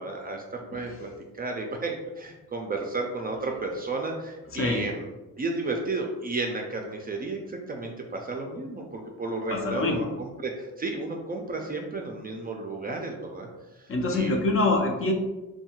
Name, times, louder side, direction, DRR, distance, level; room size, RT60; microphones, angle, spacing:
voice 1, 0.0-5.1 5.4-13.5 13.8-14.5, right 3 dB, 25° right, 2 dB, 0.4 m, -33 dB
voice 2, 4.5-4.8 9.5-10.1 13.9-15.1, left 2 dB, 40° left, 2 dB, 0.6 m, -25 dB
2.7 x 2.2 x 2.9 m, 1.1 s
cardioid pair, 75°, 34 cm